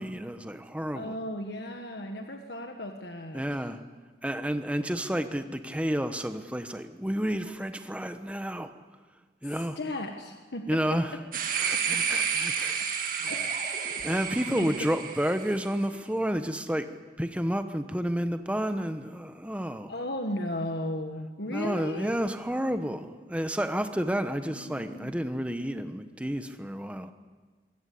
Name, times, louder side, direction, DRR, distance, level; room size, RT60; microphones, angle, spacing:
voice 1, 0.0-1.1 3.3-3.8 4.2-8.7 9.4-9.8 10.7-11.2 11.6-12.8 13.1-13.4 14.0-16.8 17.2-19.9 21.5-27.1, equal, 5° right, 8 dB, 1.1 m, -30 dB
voice 2, 0.9-3.4 9.4-10.6 11.7-12.2 13.3-13.4 14.1-14.3 14.6-14.9 19.9-22.2 24.5-25.1, left 1 dB, 70° left, 4 dB, 1.6 m, -36 dB
sound 1, 11.3-15.7, right 6 dB, 50° right, 2.1 m, -30 dB
23.0 x 17.0 x 8.4 m, 1.4 s
head